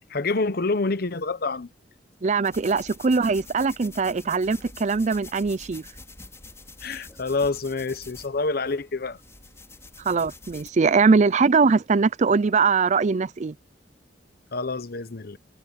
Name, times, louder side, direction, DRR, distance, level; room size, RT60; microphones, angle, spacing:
voice 1, 0.1-1.7 6.8-9.2 14.5-15.4, left 3 dB, 60° left, 1.0 m, -27 dB
voice 2, 2.2-5.8 10.0-13.5, right 4 dB, 40° right, 0.5 m, -21 dB
sound 1, 2.4-10.7, left 3 dB, 15° left, 5.3 m, -46 dB
head